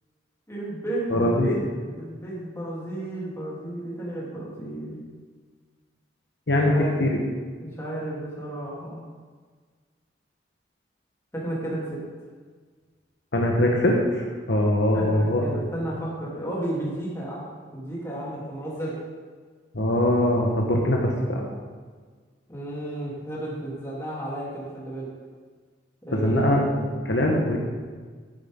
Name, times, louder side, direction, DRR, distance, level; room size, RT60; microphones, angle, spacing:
voice 1, 0.5-1.7 1.9-5.0 6.6-7.0 7.6-9.0 11.3-12.0 14.9-17.4 17.7-19.0 22.5-25.1 26.0-27.0, right 1 dB, 15° left, -7 dB, 3.1 m, -33 dB
voice 2, 1.1-1.5 6.5-6.7 7.0-7.2 13.3-15.4 19.7-21.5 26.1-27.6, left 1 dB, 65° left, -1 dB, 1.2 m, -22 dB
11.5 x 9.4 x 3.7 m, 1.5 s
head